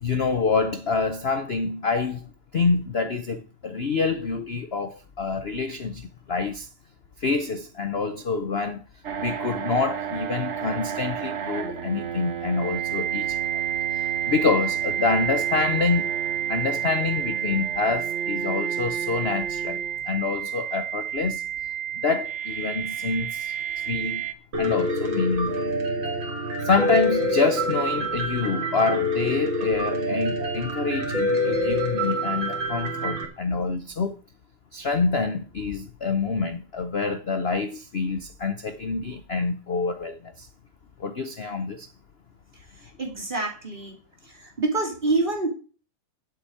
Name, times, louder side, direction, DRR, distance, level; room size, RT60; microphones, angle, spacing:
voice 1, 0.0-6.7 7.2-8.8 9.2-13.6 13.9-16.1 16.5-21.5 21.9-25.6 26.6-34.2 34.7-40.5 41.0-41.9, left 4 dB, 70° left, 0.5 m, -27 dB
sound 1, 9.0-24.3, right 9 dB, 50° right, 0.9 m, -29 dB
Piano, 24.5-33.3, equal, 65° right, 3.2 m, -26 dB
voice 2, 43.0-43.9 44.6-45.5, right 3 dB, 25° right, 2.9 m, -26 dB
8.3 x 8.0 x 8.6 m
omnidirectional pair, 2.2 m